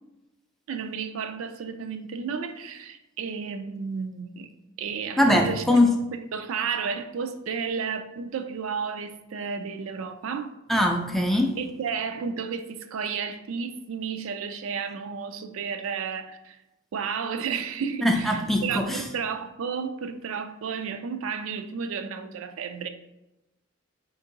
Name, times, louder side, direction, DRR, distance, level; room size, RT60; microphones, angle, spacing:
voice 1, 0.7-4.5 4.8-5.8 6.3-10.6 11.6-16.6 16.9-22.9, right 6 dB, 70° right, 0.4 m, -32 dB
voice 2, 5.2-5.9 10.7-11.6 18.0-19.0, left 1 dB, ahead, 0.3 m, -21 dB
4.4 x 2.6 x 3.8 m
head